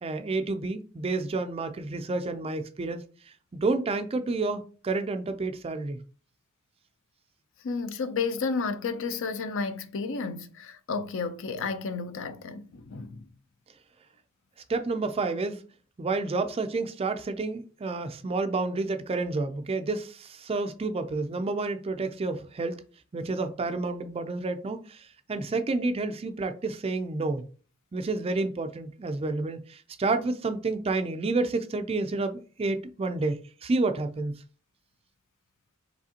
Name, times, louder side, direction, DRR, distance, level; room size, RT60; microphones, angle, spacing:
voice 1, 0.0-6.0 14.7-15.6 16.0-22.8 23.1-27.5 27.9-34.4, right 3 dB, 25° right, 0.4 m, -30 dB
voice 2, 7.6-13.2, left 4 dB, 60° left, 0.5 m, -32 dB
4.9 x 3.5 x 2.8 m
head